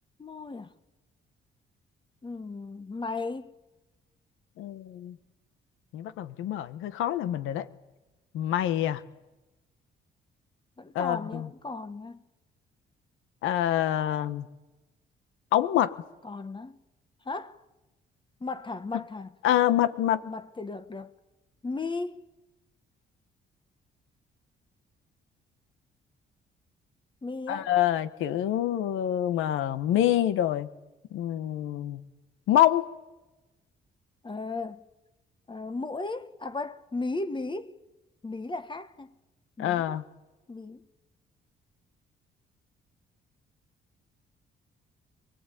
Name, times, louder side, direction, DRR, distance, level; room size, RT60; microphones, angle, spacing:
voice 1, 0.2-0.7 2.2-3.5 10.8-12.2 16.2-16.8 17.2-17.6 18.4-19.3 20.2-21.1 21.6-22.2 27.2-27.7 34.2-34.9 35.5-37.7 38.2-39.1 39.6-40.0 40.5-40.9, left 3 dB, 25° left, 1.4 m, -35 dB
voice 2, 4.6-5.2 5.9-7.7 8.3-9.0 10.9-11.5 13.4-14.5 15.5-15.9 19.4-20.2 27.5-30.7 31.1-32.0 32.5-32.9 39.6-40.0, left 12 dB, 90° left, 1.4 m, -26 dB
24.0 x 19.5 x 9.3 m
cardioid pair, 90°, 20 cm